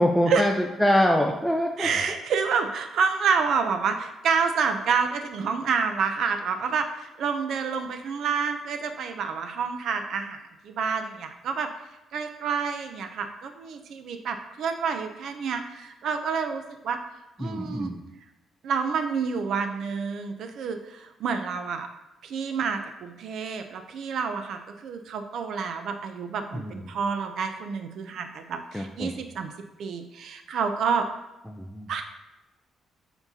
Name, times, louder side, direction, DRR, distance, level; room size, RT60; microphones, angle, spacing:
voice 1, 0.0-1.9 17.4-18.0 26.5-26.8 28.7-29.2 31.5-31.9, equal, ahead, 0 dB, 0.4 m, -24 dB
voice 2, 1.8-11.7 12.1-17.0 17.4-17.9 18.6-21.9 22.2-29.5 29.8-31.1 31.9-32.0, right 5 dB, 65° right, 7 dB, 0.5 m, -28 dB
7.1 x 5.3 x 2.7 m, 0.97 s
cardioid pair, 145°, 0 cm